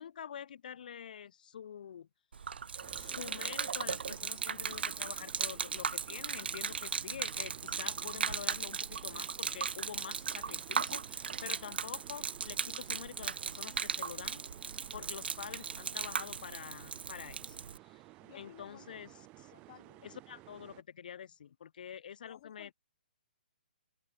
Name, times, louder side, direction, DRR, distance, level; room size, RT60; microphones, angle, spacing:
voice 1, 0.0-2.1 2.9-14.4 14.9-18.0 18.3-19.5 20.0-22.7, left 8 dB, 55° left, 7.9 m, -47 dB
Gurgling / Liquid, 2.3-17.8, right 6 dB, 75° right, 1.5 m, -37 dB
sound 1, 2.8-20.8, right 21 dB, 20° right, 1.3 m, -56 dB
voice 2, 18.2-18.8 19.5-20.0 22.2-22.7, left 15 dB, 35° left, 2.4 m, -56 dB
open air
hypercardioid pair, 160°, 6 cm